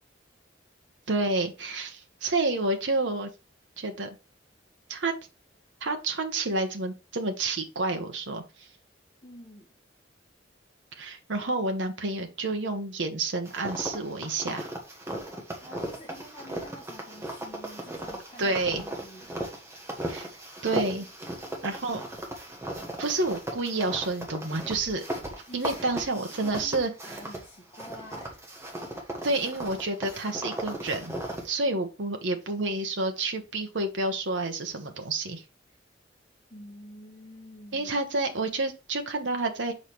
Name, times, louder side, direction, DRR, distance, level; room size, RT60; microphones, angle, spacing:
voice 1, 1.1-3.3 3.8-4.1 4.9-5.1 5.8-8.7 11.0-14.7 18.4-18.8 20.0-20.3 20.6-21.1 21.6-22.0 23.0-25.0 25.5-26.9 29.2-31.1 31.4-35.4 37.7-39.7, right 2 dB, 75° right, 1.0 m, -29 dB
voice 2, 9.2-9.7 15.6-19.4 21.2-21.8 25.5-28.4 36.5-38.0, equal, 30° left, 1.6 m, -48 dB
sound 1, 13.5-27.5 27.7-31.5, right 1 dB, 15° right, 1.5 m, -37 dB
6.5 x 5.2 x 3.1 m
head